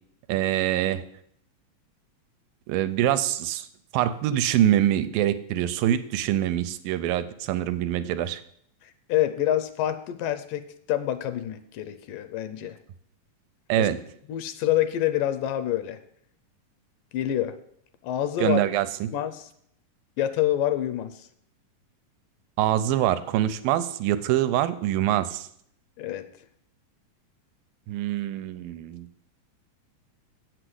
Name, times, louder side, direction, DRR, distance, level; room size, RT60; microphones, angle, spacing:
voice 1, 0.3-1.0 2.7-3.7 3.9-8.4 13.7-14.0 18.4-18.9 22.6-25.5 27.9-29.1, right 12 dB, 85° right, 12 dB, 2.3 m, -24 dB
voice 2, 8.8-12.8 13.8-13.9 14.3-16.0 17.1-17.6 18.0-18.6 19.1-19.5 20.2-21.3 26.0-26.3, left 12 dB, 80° left, 11 dB, 2.1 m, -27 dB
8.0 x 6.3 x 7.8 m, 0.68 s
omnidirectional pair, 4.1 m